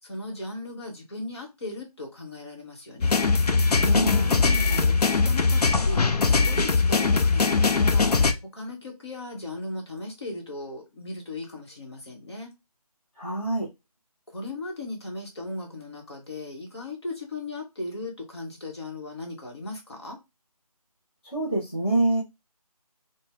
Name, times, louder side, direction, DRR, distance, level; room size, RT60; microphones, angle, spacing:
voice 1, 0.0-3.2 4.1-6.0 6.3-8.1 8.5-12.5 14.3-20.2, left 2 dB, 45° left, 1.1 m, -37 dB
sound 1, 3.0-8.3, left 4 dB, 80° left, 0.5 m, -21 dB
voice 2, 3.8-4.3 4.7-4.9 13.2-13.7 21.3-22.2, right 2 dB, 15° left, 0.7 m, -26 dB
2.7 x 2.1 x 3.5 m
figure-of-eight pair, 170°, 20 cm